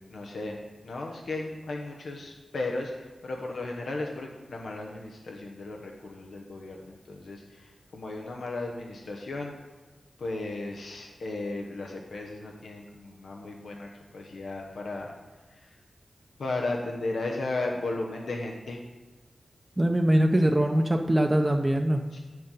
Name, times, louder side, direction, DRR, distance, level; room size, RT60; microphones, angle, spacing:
voice 1, 0.1-0.6 0.8-9.5 10.2-13.9 14.1-15.1 16.4-18.8 22.1-22.2, left 2 dB, 85° left, 0 dB, 1.1 m, -35 dB
voice 2, 19.8-22.0, right 1 dB, 15° right, 3 dB, 0.6 m, -22 dB
9.1 x 7.8 x 5.5 m, 1.3 s
wide cardioid pair, 95°, 0 cm